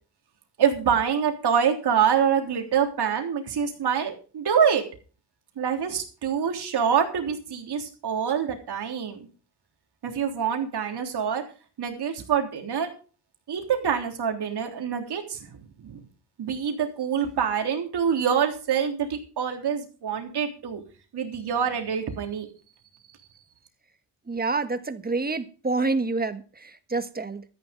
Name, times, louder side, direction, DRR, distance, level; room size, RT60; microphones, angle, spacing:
voice 1, 0.6-4.8 5.6-9.3 10.0-11.4 11.8-12.9 13.5-15.6 15.9-16.0 16.4-20.8 21.1-22.5, right 7 dB, 65° right, 3.4 m, -25 dB
voice 2, 24.3-27.4, right 3 dB, 20° right, 1.4 m, -28 dB
13.5 x 10.5 x 5.2 m
cardioid pair, 105°, 43 cm